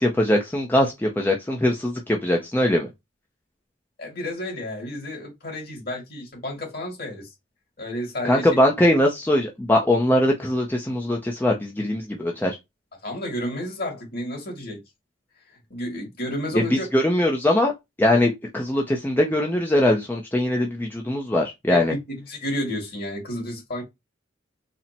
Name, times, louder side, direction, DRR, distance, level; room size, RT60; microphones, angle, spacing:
voice 1, 0.0-2.9 8.2-12.6 16.5-17.7 18.0-21.9, left 1 dB, 10° left, 0.5 m, -21 dB
voice 2, 4.0-7.3 7.8-8.5 13.0-14.8 15.7-16.9 21.7-22.0 22.3-23.8, left 1 dB, 50° left, 2.0 m, -31 dB
4.2 x 2.0 x 4.2 m
head